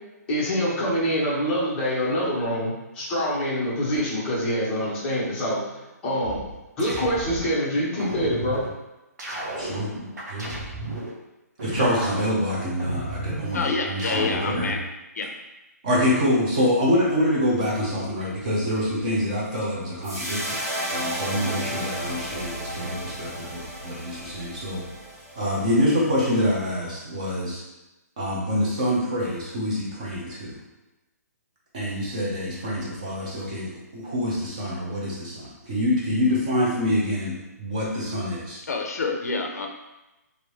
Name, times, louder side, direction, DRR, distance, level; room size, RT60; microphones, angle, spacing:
voice 1, 0.3-6.5 6.8-8.7, equal, 10° left, -9 dB, 0.6 m, -25 dB
sound 1, 6.2-7.5 8.0-8.7 9.2-11.1 11.6-13.5 14.0-14.7, right 1 dB, 85° right, 1.1 m, -33 dB
voice 2, 9.6-9.9 10.3-10.5 11.6-14.8 15.8-20.6 20.9-24.8 25.4-27.6 28.2-30.6 31.7-38.6, equal, 25° right, -5 dB, 0.8 m, -26 dB
voice 3, 13.5-14.8 15.2-15.3 38.7-39.7, left 4 dB, 65° left, 3 dB, 0.5 m, -27 dB
sound 2, 20.0-26.4, right 1 dB, 55° right, 1.4 m, -33 dB
3.3 x 2.6 x 3.1 m, 1.0 s
hypercardioid pair, 180°, 9 cm